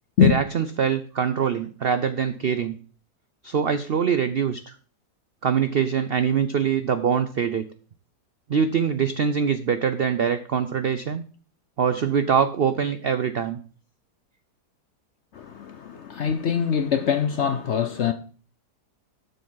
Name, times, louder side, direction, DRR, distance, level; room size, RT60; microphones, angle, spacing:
voice 1, 0.2-2.8 3.4-4.7 5.4-7.6 8.5-11.2 11.8-13.6, right 7 dB, 70° right, 0.5 m, -23 dB
voice 2, 15.3-18.1, left 8 dB, 60° left, 0.7 m, -23 dB
12.0 x 6.8 x 3.9 m
omnidirectional pair, 1.8 m